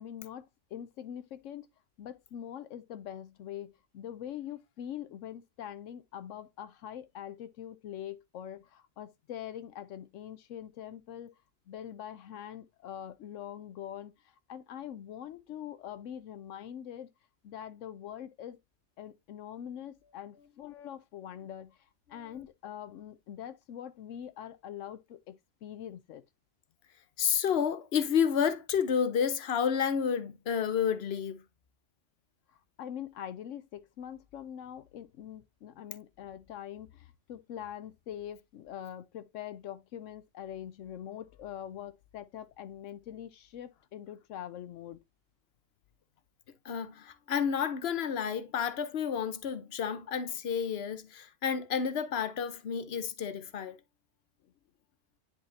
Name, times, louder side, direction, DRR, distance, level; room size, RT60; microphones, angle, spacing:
voice 1, 0.0-1.7 2.0-11.3 11.7-17.1 17.4-18.6 19.0-26.2 32.5-45.0 54.4-54.5, left 10 dB, 85° left, 1.0 m, -43 dB
voice 2, 27.2-31.4 46.6-53.8, left 7 dB, 60° left, 1.1 m, -30 dB
10.0 x 4.3 x 2.7 m
omnidirectional pair, 1.3 m